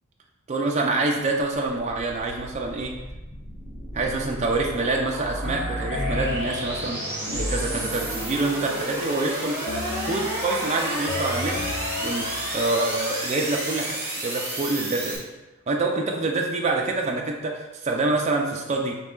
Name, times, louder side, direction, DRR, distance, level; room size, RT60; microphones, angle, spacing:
voice 1, 0.5-3.0 3.9-9.6 10.0-11.6 12.0-15.2 15.7-19.0, right 2 dB, 30° right, 0 dB, 0.4 m, -26 dB
sound 1, 1.9-15.2, right 1 dB, 10° right, 1.1 m, -32 dB
sound 2, 5.4-8.4 9.7-12.9, left 2 dB, 45° left, 0.5 m, -33 dB
4.0 x 3.1 x 3.7 m, 1.1 s
head